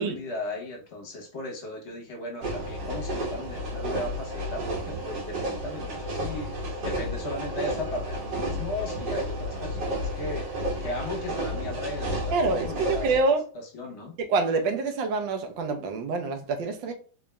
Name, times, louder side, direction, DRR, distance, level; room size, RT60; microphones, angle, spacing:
voice 1, 0.0-13.1 13.5-14.2, left 1 dB, 50° left, 1.0 m, -37 dB
sound 1, 2.4-13.2, equal, 70° right, 1.6 m, -32 dB
voice 2, 12.3-13.4 14.3-16.9, right 3 dB, 90° right, 1.4 m, -26 dB
3.9 x 3.4 x 2.2 m
omnidirectional pair, 2.0 m